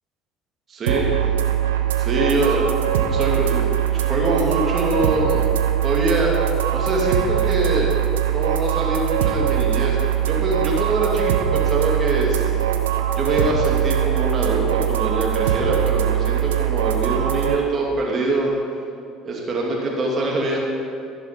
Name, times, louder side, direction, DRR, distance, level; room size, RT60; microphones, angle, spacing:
voice 1, 0.7-1.1 2.0-5.5 5.8-6.3 6.7-7.9 8.3-10.0 10.3-12.6 13.2-18.5 19.3-20.6, right 2 dB, 45° right, -2 dB, 2.5 m, -24 dB
sound 1, 0.9-17.6, right 10 dB, 85° right, 0.7 m, -21 dB
14.5 x 6.1 x 5.2 m, 2.4 s
hypercardioid pair, 65°, 0 cm